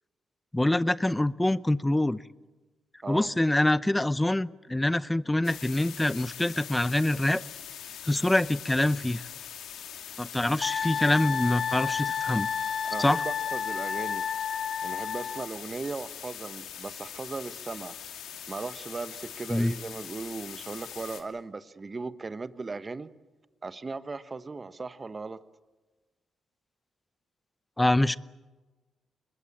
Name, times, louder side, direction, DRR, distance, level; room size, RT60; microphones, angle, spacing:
voice 1, 0.5-2.2 3.1-7.4 8.0-9.3 10.2-12.5 13.0-13.2 19.5-19.7 27.8-28.2, left 1 dB, 15° left, 18 dB, 0.7 m, -25 dB
sound 1, 5.4-21.2, left 9 dB, 80° left, 2.5 m, -43 dB
Wind instrument woodwind instrument, 10.6-15.5, left 7 dB, 65° left, 1.2 m, -31 dB
voice 2, 12.8-14.2 14.8-18.0 18.5-23.1 23.6-25.4, right 3 dB, 35° right, 13 dB, 1.2 m, -37 dB
24.5 x 21.0 x 8.5 m, 1.2 s
supercardioid pair, 55°, 0 cm